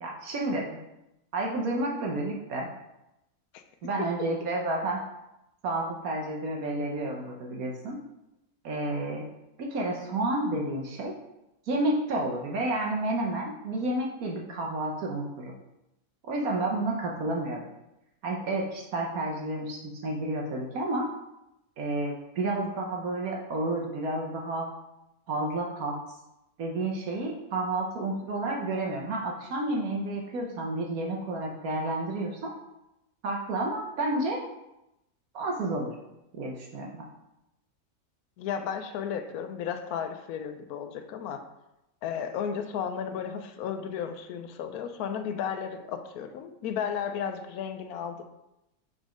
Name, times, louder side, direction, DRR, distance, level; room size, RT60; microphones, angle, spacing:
voice 1, 0.0-0.8 1.3-2.7 3.8-5.0 5.6-8.0 8.6-9.3 9.6-11.1 11.7-15.5 16.2-17.7 18.2-21.1 21.8-24.7 25.3-26.0 26.6-32.5 33.2-34.5 35.3-36.0 36.3-37.1, right 2 dB, 70° right, 0 dB, 1.3 m, -30 dB
voice 2, 38.4-41.4 42.0-48.2, left 7 dB, 80° left, 8 dB, 1.1 m, -34 dB
5.3 x 4.1 x 5.0 m, 0.89 s
omnidirectional pair, 1.6 m